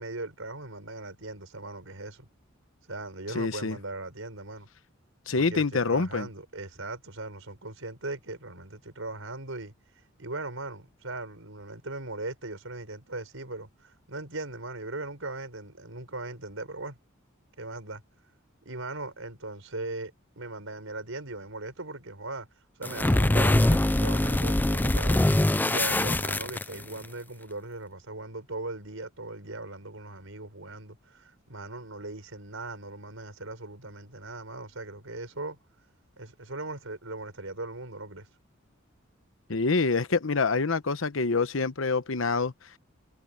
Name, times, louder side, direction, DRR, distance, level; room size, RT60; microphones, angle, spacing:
voice 1, 0.0-2.3 2.9-4.7 5.3-9.7 10.2-17.0 17.6-18.0 18.6-22.5 22.8-25.2 25.6-35.6 36.2-38.3, right 2 dB, 70° right, 6.2 m, -39 dB
voice 2, 3.3-3.8 5.3-6.3 39.5-42.5, left 4 dB, 70° left, 1.0 m, -26 dB
sound 1, 22.8-27.0, left 1 dB, 10° left, 0.4 m, -23 dB
head